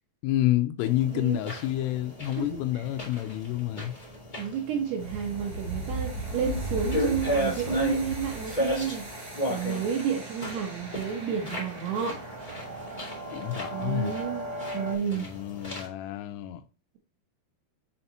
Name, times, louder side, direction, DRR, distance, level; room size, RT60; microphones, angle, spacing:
voice 1, 0.2-3.9 13.3-14.1 15.1-16.6, left 14 dB, 85° left, 3.2 m, -29 dB
sound 1, 0.8-15.9, equal, 45° left, 0.6 m, -35 dB
voice 2, 4.4-9.1 9.5-12.2 13.7-15.3, right 7 dB, 75° right, 2.4 m, -31 dB
sound 2, 5.0-15.0, right 1 dB, 20° right, 3.3 m, -37 dB
7.1 x 5.5 x 2.9 m
omnidirectional pair, 5.8 m